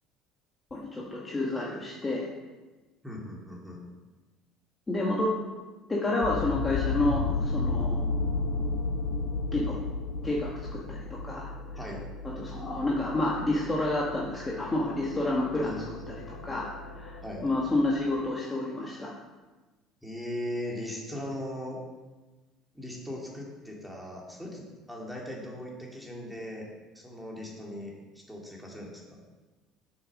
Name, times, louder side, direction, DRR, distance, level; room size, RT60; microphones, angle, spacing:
voice 1, 0.7-2.3 4.9-5.3 5.9-8.1 9.5-9.7 10.2-11.5 12.4-15.8 16.1-16.2 16.4-16.7 16.9-19.1, left 2 dB, 15° left, -4 dB, 1.4 m, -29 dB
voice 2, 3.0-3.8 11.8-12.0 15.5-15.9 17.2-17.5 20.0-21.8 22.7-26.7 26.9-29.2, left 1 dB, ahead, -2 dB, 2.3 m, -39 dB
sound 1, 6.2-18.2, left 3 dB, 85° left, 1.1 m, -34 dB
7.5 x 6.5 x 6.5 m, 1.2 s
cardioid pair, 125°, 0 cm